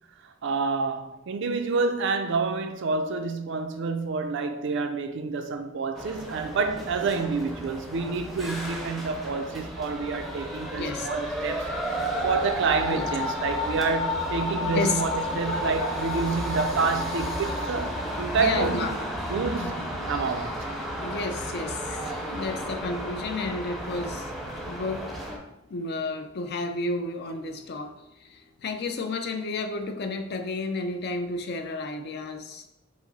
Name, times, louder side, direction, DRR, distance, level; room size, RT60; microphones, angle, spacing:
voice 1, 0.2-18.9 19.3-20.7 24.6-24.7, right 4 dB, 65° right, 0.4 m, -28 dB
sound 1, 5.9-25.4, equal, ahead, 0.6 m, -32 dB
voice 2, 10.8-11.1 12.9-13.1 14.7-15.0 18.3-18.9 19.6-19.7 21.0-24.4 24.6-25.2 25.7-32.6, left 3 dB, 55° left, 0.5 m, -31 dB
4.8 x 2.0 x 4.0 m
head